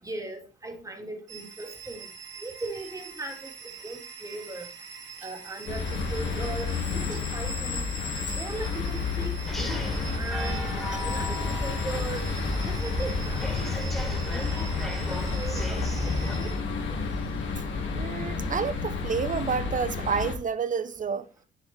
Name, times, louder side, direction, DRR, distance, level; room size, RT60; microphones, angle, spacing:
voice 1, 0.0-2.1 2.4-3.5 3.8-4.7 5.2-7.9 8.3-12.3 12.6-13.8 14.0-16.5, right 2 dB, 15° right, 3.0 m, -39 dB
sound 1, 1.3-16.5, right 6 dB, 70° right, 2.3 m, -44 dB
sound 2, 5.7-20.3, left 5 dB, 70° left, 2.7 m, -31 dB
sound 3, 9.5-16.3, equal, ahead, 3.0 m, -34 dB
voice 2, 17.9-21.3, right 6 dB, 40° right, 1.1 m, -29 dB
9.7 x 7.2 x 4.6 m
cardioid pair, 90°, 20 cm